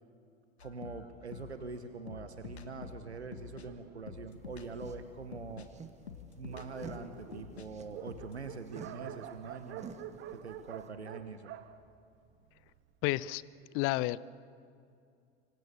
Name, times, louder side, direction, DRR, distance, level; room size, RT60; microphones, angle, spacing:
sound 1, 0.6-7.7 8.0-8.5, left 6 dB, 75° left, 1.8 m, -48 dB
voice 1, 0.6-5.7 6.4-9.9 10.3-11.5, right 4 dB, 85° right, 9 dB, 1.2 m, -44 dB
Dog, 2.0-5.0 5.7-5.8 6.1-6.2 6.4-12.8, right 10 dB, 40° right, 1.5 m, -49 dB
sound 2, 4.3-10.9, right 5 dB, 20° right, 2.0 m, -52 dB
voice 2, 13.0-13.4 13.7-14.2, left 18 dB, 40° left, 20 dB, 0.7 m, -30 dB
26.0 x 25.5 x 7.0 m, 2.4 s
figure-of-eight pair, 80°, 32 cm